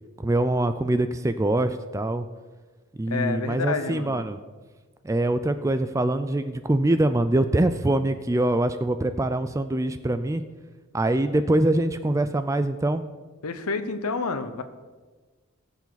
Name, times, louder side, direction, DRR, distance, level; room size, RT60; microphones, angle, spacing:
voice 1, 0.2-2.3 3.0-4.4 5.0-10.4 10.9-13.0, right 1 dB, 15° right, 10 dB, 0.3 m, -24 dB
voice 2, 3.1-4.2 13.4-14.6, left 4 dB, 90° left, 10 dB, 0.9 m, -29 dB
19.0 x 7.1 x 4.0 m, 1.3 s
head